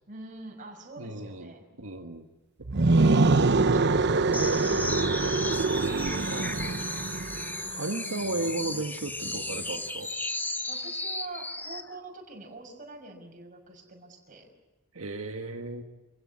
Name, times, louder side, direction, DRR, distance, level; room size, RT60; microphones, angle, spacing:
voice 1, 0.1-1.6 2.9-3.5 7.2-8.3 10.7-14.5, right 2 dB, 40° right, 2 dB, 6.1 m, -45 dB
voice 2, 1.0-1.5 1.8-2.2 2.8-3.3 6.2-6.6 7.7-10.1 14.9-15.8, right 2 dB, 85° right, 4 dB, 1.6 m, -35 dB
sound 1, 2.6-7.7, right 3 dB, 55° right, 0.9 m, -24 dB
sound 2, 4.3-11.9, left 2 dB, 10° left, 1.3 m, -35 dB
27.5 x 16.5 x 9.8 m, 1.1 s
head